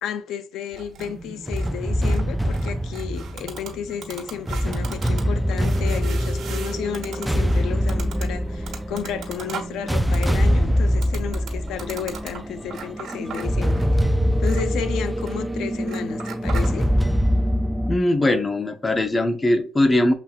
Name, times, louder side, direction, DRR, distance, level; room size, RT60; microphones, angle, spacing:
voice 1, 0.0-14.1 14.4-16.9, left 8 dB, 85° left, 0.5 m, -32 dB
sound 1, 0.7-16.7, right 6 dB, 70° right, 1.3 m, -40 dB
sound 2, 1.0-18.0, equal, 5° right, 0.4 m, -24 dB
voice 2, 17.9-20.1, left 1 dB, 25° left, 0.8 m, -20 dB
7.0 x 2.8 x 2.4 m
cardioid pair, 90°, 0 cm